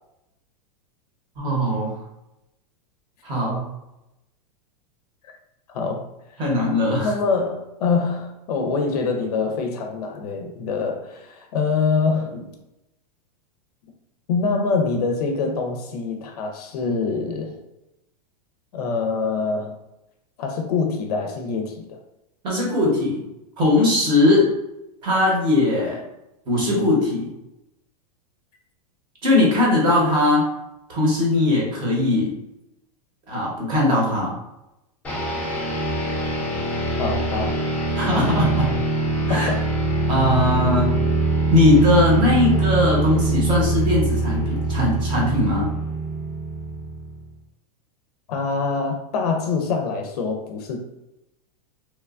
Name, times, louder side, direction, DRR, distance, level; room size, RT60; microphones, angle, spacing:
voice 1, 1.4-1.9 3.2-3.6 6.4-7.1 22.4-23.2 23.6-24.5 25.0-26.0 26.5-27.3 29.2-30.4 30.9-32.3 33.3-34.3 37.9-38.7 39.3-39.5 40.1-40.9 41.5-45.7, left 2 dB, 25° right, -3 dB, 0.8 m, -20 dB
voice 2, 5.7-6.0 7.0-12.5 14.3-17.6 18.7-19.7 20.4-22.0 37.0-37.6 39.3-39.7 48.3-50.8, left 4 dB, 65° left, 3 dB, 0.5 m, -25 dB
sound 1, 35.0-47.3, right 2 dB, 10° left, 0.5 m, -23 dB
3.0 x 2.2 x 2.3 m, 0.91 s
supercardioid pair, 165°, 21 cm